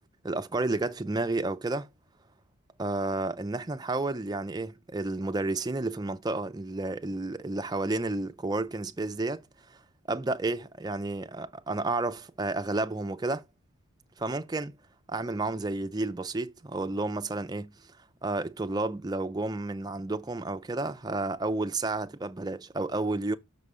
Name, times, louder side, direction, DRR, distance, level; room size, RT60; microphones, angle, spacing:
voice 1, 0.2-1.9 2.8-9.8 10.1-13.4 14.2-14.7 15.1-17.7 18.2-23.4, right 2 dB, 20° right, 0.5 m, -31 dB
6.8 x 4.9 x 5.4 m
head